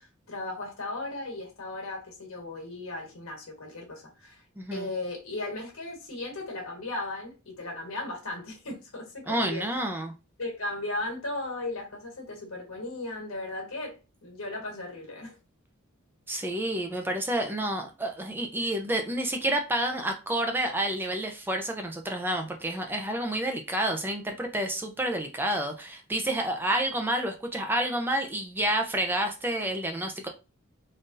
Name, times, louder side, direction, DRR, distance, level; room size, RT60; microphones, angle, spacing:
voice 1, 0.0-4.4 4.7-9.6 10.4-15.4, left 2 dB, 80° left, 1.5 m, -36 dB
voice 2, 4.6-4.9 9.3-10.1 16.3-30.3, right 1 dB, 10° right, 0.4 m, -29 dB
3.8 x 2.6 x 2.5 m
head